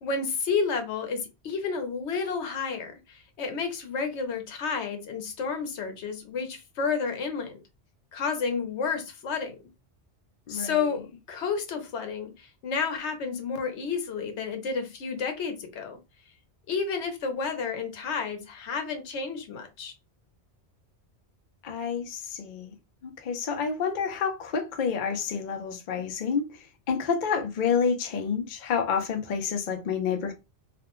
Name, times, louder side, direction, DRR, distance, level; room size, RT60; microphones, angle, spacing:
voice 1, 0.0-7.6 8.1-9.6 10.5-16.0 16.7-19.9, left 5 dB, 80° left, 1.0 m, -31 dB
voice 2, 10.5-10.9 21.6-22.7 23.0-30.3, left 6 dB, 55° left, 0.6 m, -29 dB
2.5 x 2.1 x 2.9 m
omnidirectional pair, 1.1 m